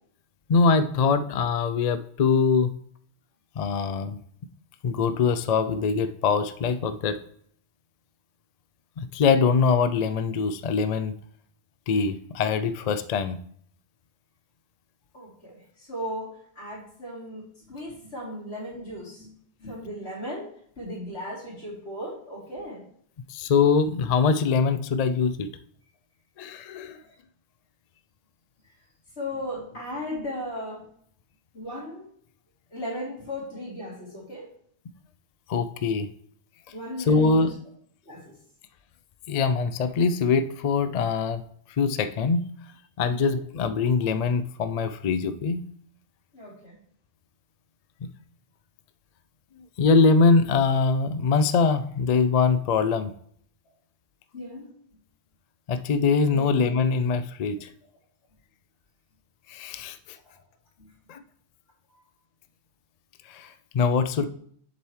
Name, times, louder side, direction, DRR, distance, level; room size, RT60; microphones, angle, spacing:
voice 1, 0.5-2.7 3.6-4.2 4.8-7.2 9.0-11.1 11.9-13.4 23.3-25.5 26.4-27.0 35.5-36.1 37.0-37.5 39.3-41.4 41.8-42.4 43.0-45.6 49.8-53.1 55.7-57.7 59.5-60.0 61.1-61.2 63.3-64.3, left 5 dB, 55° left, 11 dB, 0.4 m, -23 dB
voice 2, 15.1-15.6 15.9-16.3 16.6-17.4 17.7-19.3 19.6-20.4 20.8-22.8 29.2-30.8 31.5-32.1 32.7-34.5 36.7-37.5 38.1-38.2 43.1-43.3 46.3-46.7 54.3-54.7 56.3-56.4 64.2-64.3, left 1 dB, 75° left, -6 dB, 3.5 m, -36 dB
7.6 x 6.9 x 3.1 m, 0.63 s
omnidirectional pair, 1.1 m